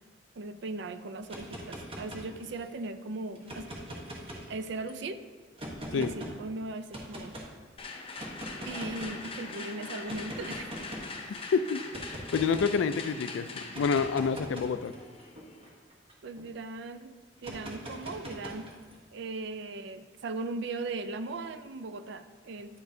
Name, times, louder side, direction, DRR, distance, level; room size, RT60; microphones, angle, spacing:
voice 1, 0.4-3.7 4.5-5.2 5.9-7.4 8.7-10.7 16.2-17.2 17.4-18.7 19.1-22.8, right 3 dB, 65° right, 10 dB, 0.5 m, -38 dB
sound 1, 1.2-2.7 3.4-4.9 5.6-6.3 6.9-7.5 8.2-9.3 10.1-11.2 11.9-12.8 13.6-16.4 17.4-19.0, equal, 30° right, 1.1 m, -42 dB
sound 2, 7.8-15.7, left 3 dB, 30° left, 0.7 m, -42 dB
voice 2, 12.3-14.9, left 5 dB, 85° left, 12 dB, 0.4 m, -28 dB
9.2 x 6.7 x 2.7 m, 1.5 s
head